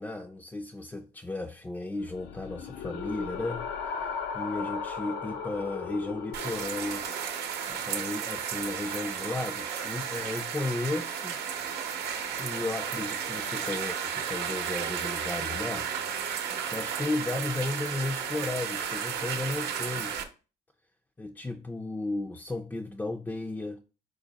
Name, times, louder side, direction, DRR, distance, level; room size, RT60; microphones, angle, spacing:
voice 1, 0.0-7.1 7.7-11.4 12.4-15.9 16.7-20.2 21.2-23.8, left 2 dB, 10° left, 0.3 m, -34 dB
sound 1, 2.0-7.1, left 6 dB, 85° left, 0.5 m, -37 dB
sound 2, 6.3-20.2, right 7 dB, 75° right, 0.7 m, -33 dB
5.0 x 2.0 x 3.9 m
cardioid pair, 110°, 17 cm